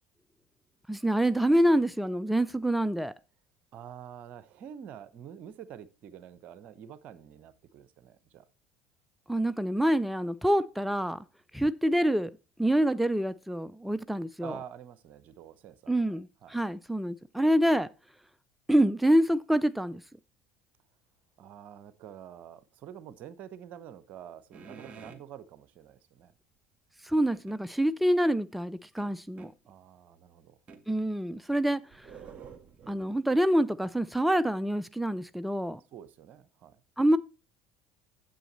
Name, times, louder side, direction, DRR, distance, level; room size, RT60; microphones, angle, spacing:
voice 1, 0.9-3.1 9.3-11.2 11.5-12.3 12.6-14.5 15.9-17.9 18.7-20.0 27.0-29.5 30.9-32.1 32.9-35.8 37.0-37.2, right 1 dB, ahead, 0.5 m, -26 dB
voice 2, 3.7-8.5 14.4-16.6 21.4-26.3 29.6-30.6 35.9-36.8, right 9 dB, 50° right, 0.9 m, -47 dB
sound 1, 24.5-25.2 27.3-27.6 29.0-29.5 30.7-30.9 31.5-33.2, right 6 dB, 35° right, 2.0 m, -49 dB
9.1 x 8.0 x 4.2 m
figure-of-eight pair, 60°, 3 cm